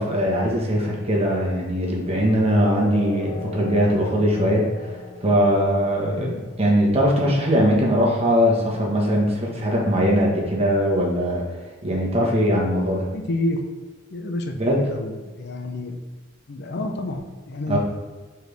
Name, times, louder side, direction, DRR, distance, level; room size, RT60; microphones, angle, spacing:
voice 1, 0.0-4.7 5.2-11.4 11.8-13.1 14.6-14.8 17.7-17.8, equal, 30° right, -2 dB, 1.4 m, -21 dB
sound 1, 2.5-9.5, left 4 dB, 75° left, 1.7 m, -39 dB
voice 2, 13.1-13.6 14.1-16.0 16.5-17.8, left 2 dB, 60° left, 4 dB, 0.6 m, -29 dB
6.1 x 4.5 x 3.5 m, 1.4 s
head